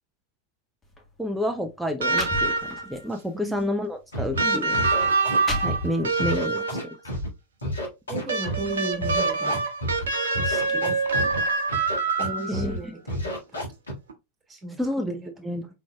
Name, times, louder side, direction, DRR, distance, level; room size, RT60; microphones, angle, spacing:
sound 1, 0.8-1.0 1.7-1.8 2.1-3.0 3.6-3.7 4.5-4.6 5.1-6.2, left 1 dB, 15° left, 1.3 m, -34 dB
voice 1, 1.2-4.8 5.6-6.6 12.5-12.9 14.8-15.7, left 1 dB, 5° right, 0.4 m, -29 dB
sound 2, 2.0-3.0 4.4-6.9 8.3-12.7 14.1-14.2, right 3 dB, 65° right, 0.7 m, -25 dB
voice 2, 3.3-3.7 4.4-4.6 8.1-9.6 10.3-11.3 12.2-13.3 14.5-15.7, right 2 dB, 20° right, 1.5 m, -36 dB
Scratching (performance technique), 4.1-4.4 4.7-5.9 6.2-7.3 7.6-8.7 9.0-10.0 10.3-11.4 11.7-12.3 12.5-12.8 13.1-13.9, equal, 75° left, 1.5 m, -30 dB
4.6 x 3.8 x 2.2 m
figure-of-eight pair, 90°, 0 cm